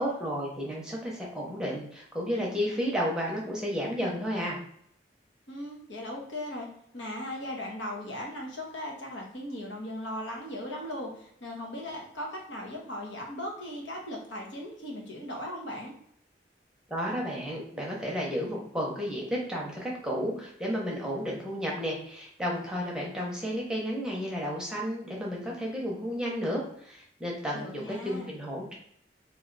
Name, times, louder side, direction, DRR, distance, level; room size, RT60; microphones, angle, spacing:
voice 1, 0.0-4.6 16.9-28.7, equal, 5° right, -3 dB, 0.7 m, -32 dB
voice 2, 5.5-6.7 6.9-15.9 27.5-28.3, left 1 dB, 80° left, -1 dB, 1.1 m, -38 dB
3.2 x 2.7 x 3.9 m, 0.69 s
head